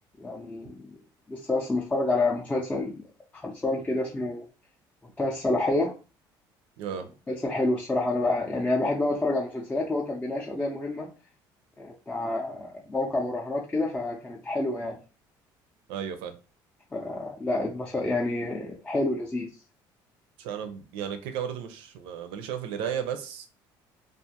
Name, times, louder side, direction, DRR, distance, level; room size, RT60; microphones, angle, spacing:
voice 1, 0.2-0.8 1.3-3.0 3.4-4.4 5.2-5.9 7.4-11.1 11.8-15.0 16.9-19.5, left 2 dB, 10° left, -3 dB, 0.4 m, -28 dB
voice 2, 6.8-7.1 15.9-16.3 20.4-23.5, right 8 dB, 85° right, 8 dB, 0.5 m, -34 dB
2.4 x 2.3 x 2.8 m, 0.33 s
cardioid pair, 135°, 9 cm